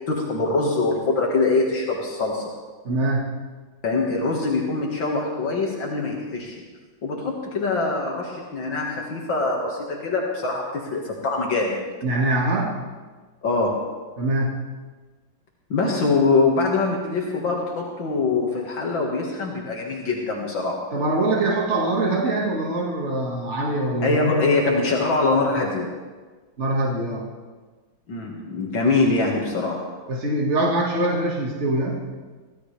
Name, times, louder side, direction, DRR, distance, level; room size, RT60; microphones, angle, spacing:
voice 1, 0.0-2.5 3.8-6.6 7.0-11.8 13.4-13.9 15.7-20.8 24.0-26.0 28.1-29.9, left 3 dB, 70° left, -2 dB, 2.6 m, -23 dB
voice 2, 2.8-3.4 12.0-12.7 14.2-14.6 20.9-24.2 26.6-27.3 30.1-32.0, right 2 dB, 35° right, -2 dB, 2.2 m, -23 dB
24.0 x 16.5 x 3.4 m, 1.4 s
omnidirectional pair, 2.2 m